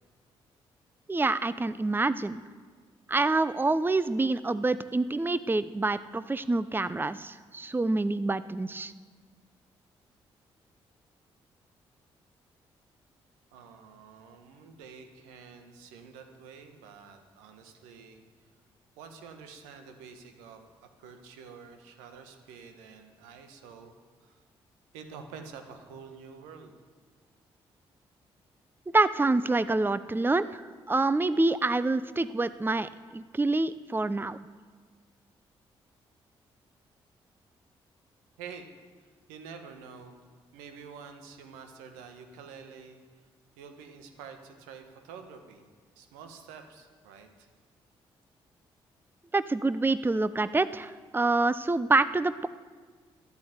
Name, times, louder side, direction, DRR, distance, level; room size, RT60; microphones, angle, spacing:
voice 1, 1.1-2.4 3.1-8.9 28.9-34.4 49.3-52.5, right 2 dB, 15° right, 15 dB, 0.7 m, -27 dB
voice 2, 13.5-18.2 19.0-23.9 24.2-24.4 24.9-26.7 38.4-38.7 39.0-40.2 40.5-43.0 43.6-45.6 45.9-47.5, right 6 dB, 80° right, 6 dB, 1.5 m, -48 dB
13.0 x 10.5 x 8.1 m, 1.5 s
hypercardioid pair, 40°, 13 cm